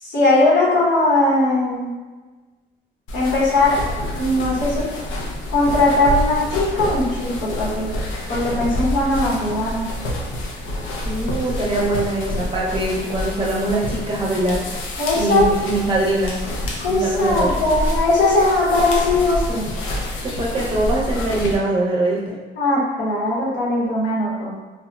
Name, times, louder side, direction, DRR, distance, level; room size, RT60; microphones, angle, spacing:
voice 1, 0.0-1.9 3.1-4.9 5.5-7.9 8.3-9.9 15.0-15.5 16.8-19.7 22.6-24.5, left 2 dB, 65° left, -6 dB, 0.9 m, -19 dB
sound 1, 3.1-21.6, left 1 dB, 90° left, 0.5 m, -27 dB
voice 2, 11.0-14.7 15.1-16.4 16.9-17.5 20.2-22.4, right 2 dB, 25° right, -4 dB, 0.6 m, -22 dB
2.8 x 2.0 x 2.3 m, 1.3 s
cardioid pair, 90°, 20 cm